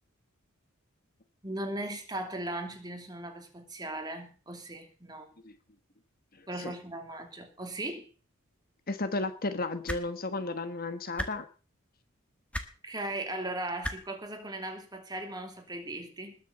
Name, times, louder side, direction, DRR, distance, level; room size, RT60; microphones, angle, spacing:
voice 1, 1.4-5.3 6.5-8.1 12.8-16.4, right 1 dB, 20° right, 2.7 m, -38 dB
voice 2, 6.4-6.7 8.9-11.4, left 2 dB, 45° left, 1.3 m, -34 dB
sound 1, 9.8-10.0 11.1-11.3 12.5-12.7 13.8-13.9 15.2-15.3, left 1 dB, 5° left, 1.6 m, -33 dB
20.5 x 7.2 x 6.7 m
head